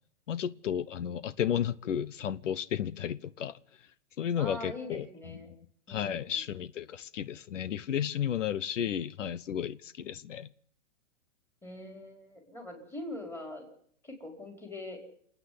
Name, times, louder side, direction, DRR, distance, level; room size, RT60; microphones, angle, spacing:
voice 1, 0.3-3.6 4.2-5.6 5.9-10.5, left 9 dB, 85° left, 1.1 m, -33 dB
voice 2, 4.4-5.5 5.9-6.4 11.6-13.7 14.0-15.0, left 1 dB, 5° left, 5.0 m, -42 dB
28.0 x 9.5 x 9.8 m
hypercardioid pair, 165°, 37 cm